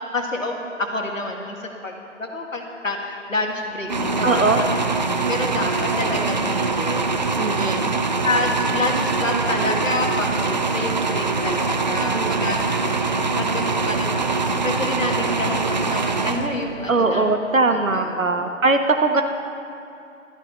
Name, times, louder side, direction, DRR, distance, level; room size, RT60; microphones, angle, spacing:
voice 1, 0.1-1.6 1.8-1.9 2.2-4.6 5.3-7.5 8.2-12.6 12.8-13.0 13.4-17.3 17.7-18.6, left 2 dB, 75° left, 1 dB, 1.9 m, -28 dB
sound 1, 3.9-16.9, right 4 dB, 35° right, 0.5 m, -23 dB
voice 2, 4.2-4.6 7.4-7.9 12.0-12.6 16.9-19.2, right 3 dB, 80° right, 6 dB, 1.2 m, -21 dB
14.0 x 13.0 x 4.2 m, 2.6 s
figure-of-eight pair, 145°, 39 cm